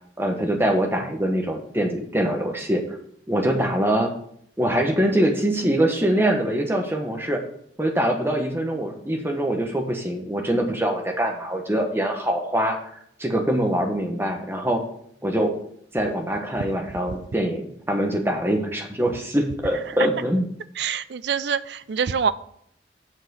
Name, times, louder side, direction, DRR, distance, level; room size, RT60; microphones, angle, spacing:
voice 1, 0.2-2.8 3.3-4.1 4.6-7.4 7.8-12.8 13.2-14.8 15.2-15.5 15.9-20.4, right 1 dB, 15° right, 1.2 m, -23 dB
voice 2, 20.8-22.3, right 7 dB, 70° right, 0.4 m, -25 dB
7.2 x 5.9 x 6.4 m
head